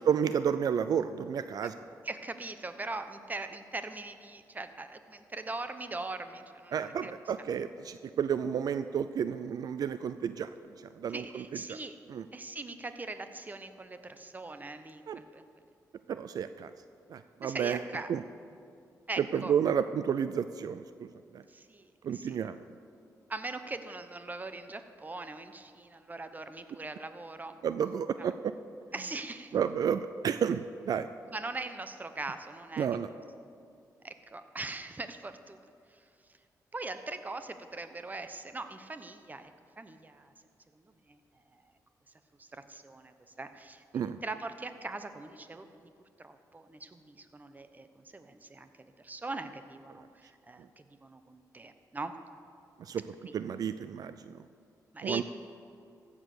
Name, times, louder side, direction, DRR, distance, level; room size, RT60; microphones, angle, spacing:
voice 1, 0.1-1.7 6.7-10.5 10.8-11.8 12.1-12.3 15.1-15.2 16.1-16.7 17.1-17.8 18.1-18.2 19.2-21.1 21.3-21.4 22.0-22.6 27.6-28.5 29.5-31.1 32.8-33.1 43.9-44.2 52.8-54.4 55.0-55.2, right 8 dB, 70° right, 12 dB, 0.4 m, -31 dB
voice 2, 2.0-7.1 11.1-12.0 12.3-15.5 17.4-18.1 19.1-19.5 21.5-22.4 23.3-27.6 28.9-29.5 31.3-32.9 34.0-35.7 36.7-39.5 39.8-40.3 40.8-41.2 42.4-43.8 44.2-45.9 46.2-47.9 48.1-52.1 54.9-55.2, right 3 dB, 25° right, 9 dB, 0.9 m, -41 dB
15.5 x 7.4 x 6.6 m, 2.4 s
cardioid pair, 90°, 7 cm